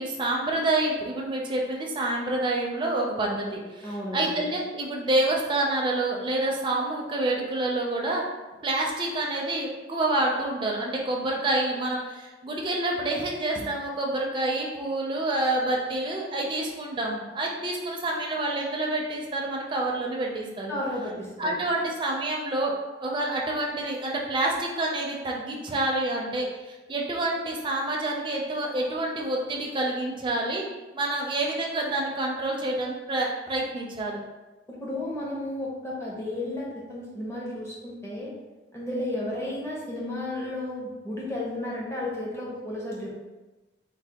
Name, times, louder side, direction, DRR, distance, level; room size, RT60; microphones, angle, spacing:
voice 1, 0.0-8.2 8.6-20.7 21.4-22.7 23.0-30.6 30.9-34.2, right 2 dB, 25° right, -1 dB, 0.4 m, -28 dB
voice 2, 3.8-4.4 20.7-21.5 34.7-38.3 38.7-43.1, left 1 dB, 15° left, -5 dB, 0.6 m, -33 dB
3.2 x 2.1 x 2.8 m, 1.2 s
head